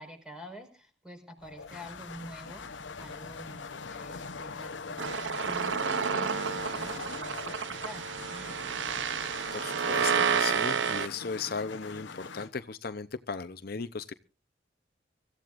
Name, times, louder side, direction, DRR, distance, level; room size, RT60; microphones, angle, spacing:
voice 1, 0.0-8.6, equal, 5° right, 5 dB, 5.2 m, -47 dB
sound 1, 1.4-12.5, left 4 dB, 85° left, 0.9 m, -42 dB
Insect / Frog, 1.4-9.4, equal, 25° right, 5.2 m, -57 dB
sound 2, 5.0-11.1, right 6 dB, 85° right, 0.7 m, -30 dB
voice 2, 9.5-14.1, left 5 dB, 55° left, 11 dB, 0.7 m, -36 dB
24.5 x 15.0 x 2.5 m, 0.35 s
head